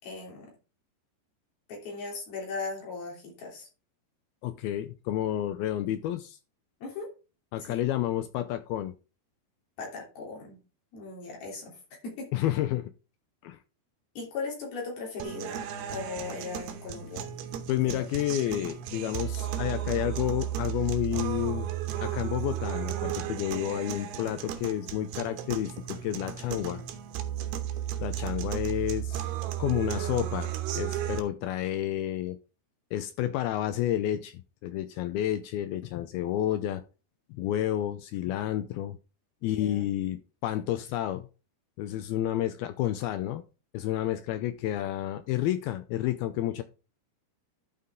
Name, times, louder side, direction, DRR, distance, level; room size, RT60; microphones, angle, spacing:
voice 1, 0.0-0.5 1.7-3.7 6.8-7.1 7.6-7.8 9.8-10.6 10.9-11.8 12.0-12.5 14.1-17.3 17.8-18.0 39.4-39.8, left 4 dB, 60° left, -1 dB, 5.0 m, -38 dB
voice 2, 4.4-6.4 7.5-8.9 12.3-12.9 13.4-13.6 17.7-21.7 22.0-26.8 28.0-29.3 29.6-32.4 32.9-36.8 37.3-39.0 39.4-41.3 41.8-43.4 43.7-46.6, left 12 dB, 80° left, 10 dB, 2.2 m, -30 dB
sound 1, 15.2-31.2, right 11 dB, 75° right, 2.9 m, -34 dB
12.0 x 5.8 x 3.7 m, 0.32 s
omnidirectional pair, 5.0 m